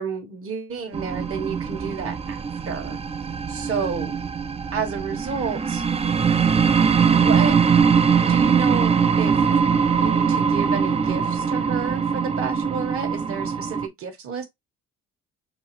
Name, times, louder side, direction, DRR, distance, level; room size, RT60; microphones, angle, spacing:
voice 1, 0.0-3.0 3.5-4.2 4.7-5.8 7.1-7.6 8.2-9.4 9.9-14.5, right 6 dB, 45° right, 1.2 m, -30 dB
sound 1, 0.9-13.9, right 6 dB, 20° right, 0.4 m, -21 dB
5.5 x 2.4 x 3.0 m
supercardioid pair, 65°, 32 cm